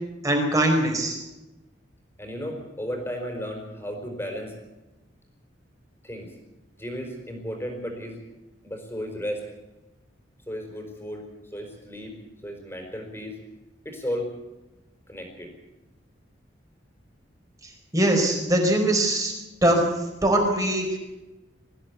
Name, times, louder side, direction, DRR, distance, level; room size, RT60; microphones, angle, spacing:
voice 1, 0.2-1.2 17.9-19.3 19.6-19.8 20.2-20.8, right 1 dB, 20° right, 2 dB, 4.7 m, -21 dB
voice 2, 2.2-4.5 6.0-6.3 6.8-8.2 8.6-9.4 10.5-11.2 11.5-12.2 12.4-13.4 13.8-14.3 15.1-15.5, equal, 15° left, 3 dB, 4.7 m, -34 dB
22.0 x 15.0 x 8.3 m, 1.0 s
head